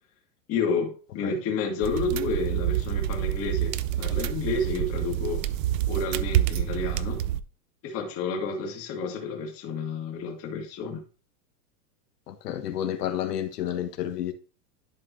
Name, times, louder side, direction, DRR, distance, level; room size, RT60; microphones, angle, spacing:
voice 1, 0.5-3.7 4.0-5.5 5.9-7.2 7.8-11.0, left 4 dB, 30° left, 2.0 m, -30 dB
sound 1, 1.8-7.4, right 12 dB, 55° right, 0.6 m, -27 dB
voice 2, 12.3-14.3, left 11 dB, 80° left, 1.4 m, -30 dB
11.0 x 5.4 x 2.9 m
supercardioid pair, 155°, 46 cm